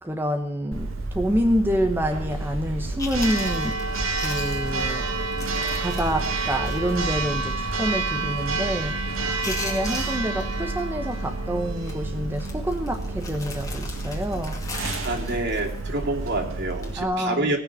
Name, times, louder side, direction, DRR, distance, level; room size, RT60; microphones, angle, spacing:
voice 1, 0.0-3.8 4.2-5.1 5.8-9.0 9.4-14.6 17.0-17.5, equal, 10° right, 4 dB, 1.1 m, -27 dB
Church bell, 0.7-17.0, right 3 dB, 80° right, 1.9 m, -29 dB
Chewing mastication, 2.7-2.8 3.0-7.0 7.3-7.4 7.9-8.2 8.5-9.0 9.3-10.8 11.1-11.3 11.8-12.0 12.3-16.3 16.7-17.0, left 3 dB, 15° left, 2.3 m, -39 dB
voice 2, 15.0-17.6, right 2 dB, 55° right, 1 dB, 2.8 m, -27 dB
18.0 x 6.7 x 8.7 m, 0.63 s
head